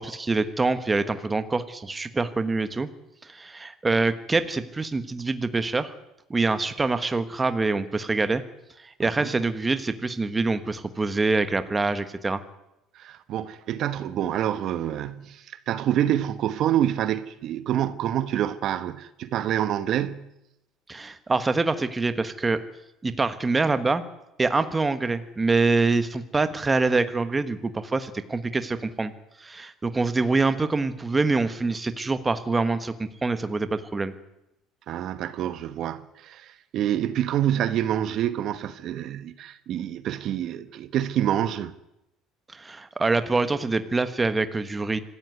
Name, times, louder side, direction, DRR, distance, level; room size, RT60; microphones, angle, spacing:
voice 1, 0.0-2.9 3.2-5.9 6.3-8.4 8.8-12.4 20.9-22.6 23.0-24.0 24.4-29.1 29.4-34.1 42.5-45.0, right 3 dB, 15° right, 1.3 m, -25 dB
voice 2, 9.0-9.3 12.9-20.3 34.9-41.7, right 11 dB, 45° right, 1.2 m, -27 dB
25.0 x 15.0 x 9.5 m
cardioid pair, 155°, 0 cm